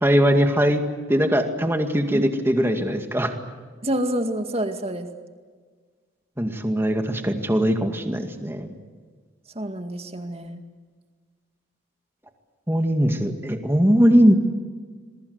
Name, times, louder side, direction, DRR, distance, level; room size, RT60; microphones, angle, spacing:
voice 1, 0.0-0.8 1.1-3.3 6.4-8.7 12.7-14.3, equal, 10° right, 5 dB, 2.2 m, -20 dB
voice 2, 3.8-5.1 9.5-10.6, right 1 dB, 30° right, 6 dB, 2.1 m, -27 dB
27.5 x 22.5 x 8.1 m, 1.5 s
head